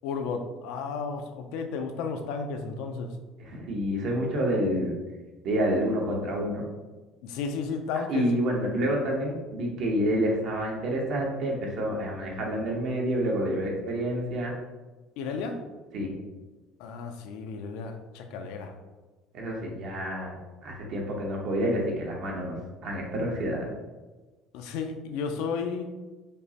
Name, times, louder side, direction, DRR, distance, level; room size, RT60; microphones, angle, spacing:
voice 1, 0.0-3.1 7.2-8.3 15.2-15.6 16.8-18.7 24.5-25.9, left 5 dB, 85° left, 5 dB, 0.4 m, -33 dB
voice 2, 3.4-5.0 5.4-6.6 8.1-14.5 15.9-16.1 19.3-22.6 22.8-23.7, equal, 60° right, -1 dB, 0.9 m, -28 dB
5.1 x 2.0 x 2.8 m, 1.2 s
cardioid pair, 115°, 0 cm